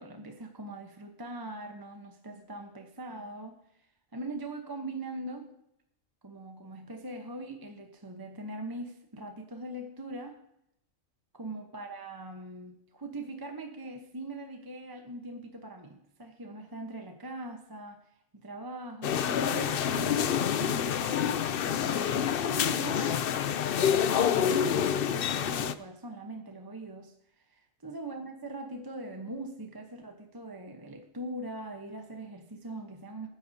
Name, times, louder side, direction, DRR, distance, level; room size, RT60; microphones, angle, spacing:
voice 1, 0.0-3.6 4.1-5.5 6.2-10.4 11.3-18.0 18.4-21.2 21.6-23.3 23.5-33.3, right 2 dB, 20° right, 4 dB, 0.9 m, -41 dB
sound 1, 19.0-25.7, left 9 dB, 60° left, 0.6 m, -27 dB
19.5 x 10.0 x 2.8 m, 0.77 s
omnidirectional pair, 1.4 m